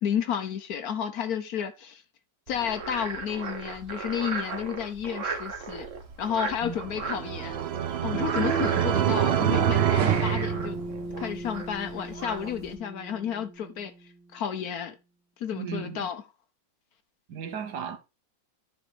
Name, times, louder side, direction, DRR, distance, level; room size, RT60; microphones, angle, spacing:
voice 1, 0.0-2.0 2.5-5.9 6.2-7.6 8.0-10.8 11.2-13.9 14.3-14.9 15.4-16.2, left 8 dB, 60° left, 1.2 m, -31 dB
Frog, 2.5-12.8, right 4 dB, 45° right, 1.6 m, -37 dB
sound 1, 6.7-11.3, right 10 dB, 90° right, 0.5 m, -26 dB
Bass guitar, 10.0-14.4, right 1 dB, 10° right, 1.6 m, -38 dB
voice 2, 15.5-16.1 17.3-18.0, right 7 dB, 65° right, 1.6 m, -35 dB
10.0 x 4.3 x 4.8 m
omnidirectional pair, 2.0 m